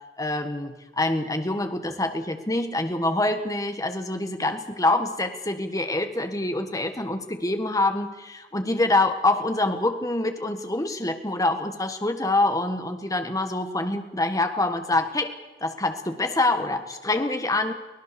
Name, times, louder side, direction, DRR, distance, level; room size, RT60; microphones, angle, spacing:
voice 1, 0.2-15.3 15.6-17.7, left 2 dB, 20° left, 7 dB, 1.4 m, -25 dB
24.0 x 17.0 x 6.9 m, 1.1 s
head